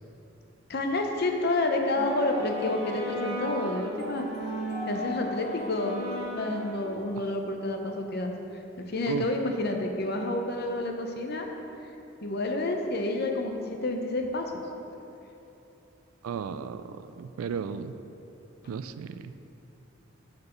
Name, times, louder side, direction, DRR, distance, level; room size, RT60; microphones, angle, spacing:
voice 1, 0.7-4.3 4.9-6.0 6.3-8.3 8.9-11.5 12.2-13.5 13.8-14.5, left 2 dB, 50° left, 3 dB, 0.7 m, -29 dB
sound 1, 2.0-7.2, equal, 30° right, 1.2 m, -36 dB
voice 2, 16.2-16.8 17.2-17.9 18.7-19.3, right 6 dB, 85° right, 12 dB, 0.3 m, -34 dB
6.7 x 4.5 x 6.6 m, 3.0 s
head